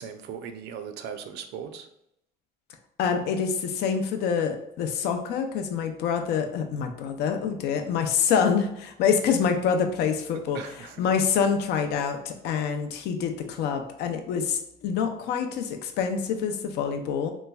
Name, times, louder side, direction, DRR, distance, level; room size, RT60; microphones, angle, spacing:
voice 1, 0.0-1.9 10.3-11.1, right 7 dB, 80° right, 8 dB, 0.4 m, -38 dB
voice 2, 3.0-17.3, left 6 dB, 80° left, 6 dB, 0.5 m, -26 dB
3.3 x 3.0 x 2.3 m, 0.77 s
cardioid pair, 110°, 17 cm